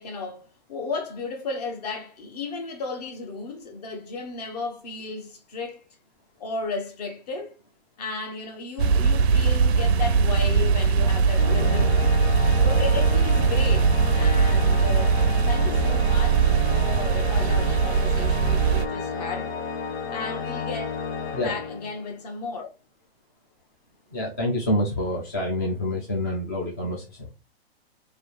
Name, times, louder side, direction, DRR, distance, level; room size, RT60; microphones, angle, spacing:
voice 1, 0.0-5.8 6.4-7.6 8.0-12.1 12.6-13.9 14.2-19.5 20.1-20.9 21.4-22.7, left 3 dB, 40° left, 1.0 m, -34 dB
sound 1, 8.8-18.9, right 5 dB, 80° right, 0.6 m, -21 dB
Organ, 11.3-22.2, left 6 dB, 80° left, 0.9 m, -32 dB
voice 2, 24.1-27.3, left 1 dB, 20° left, 0.4 m, -27 dB
3.2 x 2.6 x 4.4 m
hypercardioid pair, 175°, 31 cm